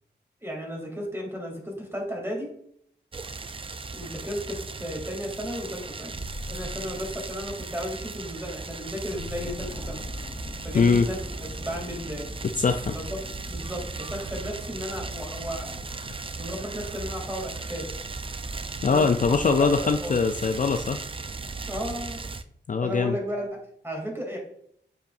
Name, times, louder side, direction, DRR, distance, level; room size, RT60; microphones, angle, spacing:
voice 1, 0.4-2.5 3.9-6.2 6.5-10.1 10.6-12.3 12.9-15.8 16.4-17.9 18.8-19.7 20.0-20.1 21.7-22.2 22.8-23.5 23.8-24.4, equal, 10° right, -1 dB, 2.8 m, -34 dB
sound 1, 3.1-22.4, right 4 dB, 30° right, 0.4 m, -37 dB
sound 2, 6.1-7.6 9.1-10.6, left 1 dB, 60° right, 2.8 m, -40 dB
sound 3, 8.9-21.2 21.8-21.9, left 1 dB, 25° left, 1.0 m, -43 dB
voice 2, 10.7-11.1 12.6-12.9 18.8-21.0 22.7-23.2, left 5 dB, 45° left, 7 dB, 0.4 m, -22 dB
8.7 x 5.6 x 2.6 m, 0.70 s
cardioid pair, 65°, 19 cm